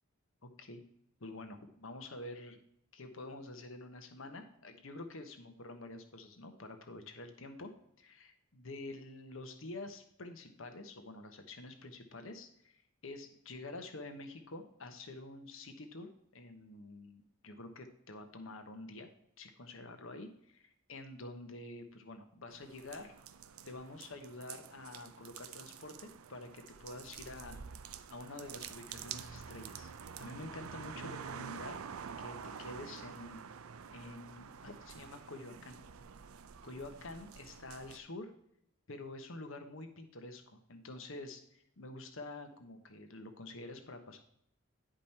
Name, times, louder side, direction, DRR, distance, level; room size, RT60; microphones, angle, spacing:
voice 1, 0.4-0.8 1.2-2.6 2.9-7.7 8.0-19.1 19.4-23.1 23.6-27.6 28.1-29.9 30.2-31.8 32.2-33.5 33.9-35.8 36.6-38.3 38.9-44.2, left 2 dB, 70° left, 7 dB, 1.1 m, -48 dB
sound 1, 22.5-38.0, right 7 dB, 90° right, 0.5 m, -48 dB
10.5 x 5.2 x 4.3 m, 0.72 s
head